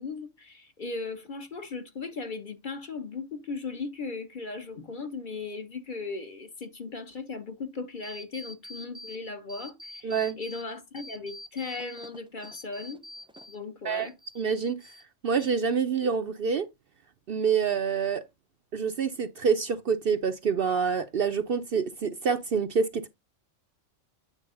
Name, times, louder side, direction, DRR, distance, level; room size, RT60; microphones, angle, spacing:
voice 1, 0.0-13.0 13.5-14.1, left 4 dB, 45° left, 1.1 m, -37 dB
sound 1, 8.0-9.2 9.5-10.6 11.0-13.6 13.9-15.0 15.3-16.0, left 1 dB, 5° right, 0.4 m, -46 dB
voice 2, 10.0-10.4 13.8-14.1 14.4-14.8 15.2-16.7 17.3-18.2 18.7-23.1, right 6 dB, 55° right, 0.7 m, -27 dB
9.0 x 4.5 x 3.8 m
omnidirectional pair, 1.3 m